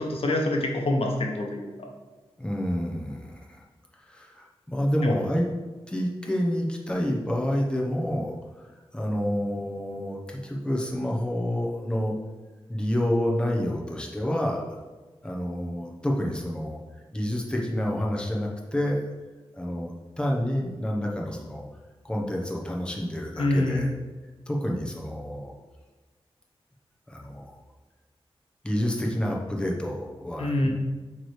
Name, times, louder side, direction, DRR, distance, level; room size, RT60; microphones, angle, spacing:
voice 1, 0.0-1.7 5.0-5.2 23.4-23.8 30.4-30.7, left 1 dB, 70° left, 1 dB, 1.0 m, -25 dB
voice 2, 2.4-3.6 4.1-5.4 5.9-8.3 8.9-12.1 12.7-14.8 15.2-16.8 17.1-19.1 19.5-21.7 22.0-23.9 24.5-25.5 27.1-27.6 28.6-30.7, equal, 10° left, -2 dB, 1.0 m, -28 dB
8.5 x 3.3 x 4.7 m, 1.3 s
wide cardioid pair, 135°, 10 cm